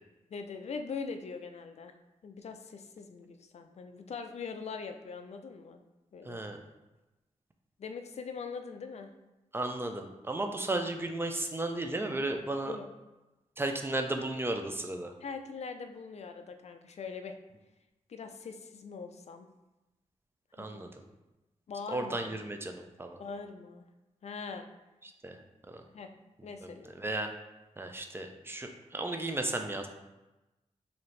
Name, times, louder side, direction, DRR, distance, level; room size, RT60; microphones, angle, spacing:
voice 1, 0.3-1.9 2.2-5.8 6.1-6.4 7.8-9.1 12.7-12.8 15.2-17.4 18.1-19.5 20.6-20.8 21.7-22.2 23.2-23.8 24.2-24.7 25.9-26.1 26.4-26.9, left 5 dB, 60° left, 7 dB, 0.4 m, -42 dB
voice 2, 6.2-6.6 9.5-12.8 13.6-15.1 20.6-21.0 21.9-23.2 25.0-25.4 25.7-25.8 26.6-27.3 27.8-29.9, right 2 dB, 20° right, 4 dB, 0.4 m, -34 dB
4.1 x 2.7 x 3.2 m, 1.0 s
wide cardioid pair, 85°, 13 cm